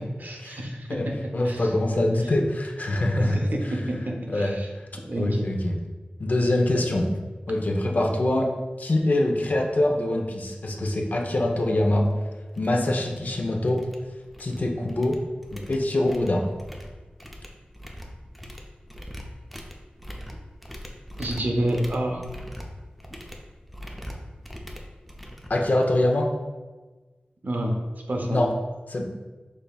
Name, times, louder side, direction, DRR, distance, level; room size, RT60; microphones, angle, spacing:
voice 1, 0.2-1.0 1.4-1.7 3.3-4.7 5.1-5.5 21.2-22.2 27.4-27.7 28.1-28.4, right 1 dB, 65° right, 2 dB, 0.6 m, -28 dB
voice 2, 1.3-3.4 4.3-5.7 6.2-7.1 7.5-8.5 8.8-12.1 12.6-13.8 14.4-15.2 15.5-16.5 25.5-26.3 28.3-28.5 28.9-29.0, left 1 dB, 55° left, 2 dB, 0.6 m, -24 dB
sound 1, 12.0-12.1 12.5-12.8 13.0-13.4 13.7-14.6 14.9-26.1, equal, ahead, 0.5 m, -41 dB
5.4 x 3.4 x 2.3 m, 1.3 s
wide cardioid pair, 75°, 3 cm